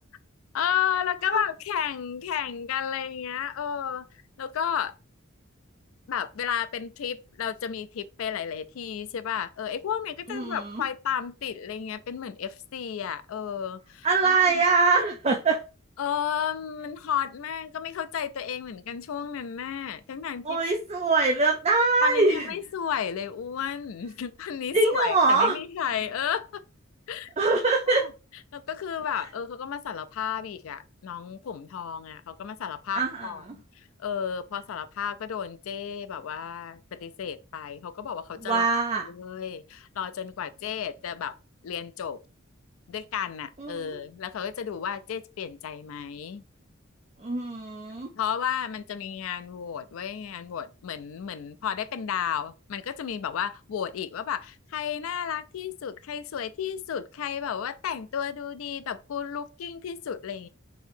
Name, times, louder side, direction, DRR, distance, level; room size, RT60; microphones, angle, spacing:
voice 1, 0.5-4.1 4.4-4.9 6.1-14.6 16.0-20.6 22.0-26.6 27.1-27.3 27.9-28.1 28.5-33.6 34.0-38.7 39.0-41.4 41.6-42.2 42.9-46.4 48.2-60.5, left 8 dB, 80° left, 0.4 m, -32 dB
voice 2, 10.3-10.8 14.0-15.6 20.4-22.5 24.7-25.6 27.4-28.1 32.9-33.3 38.4-39.0 43.6-43.9 47.2-48.1, right 3 dB, 30° right, 0.4 m, -23 dB
4.1 x 2.8 x 2.6 m
head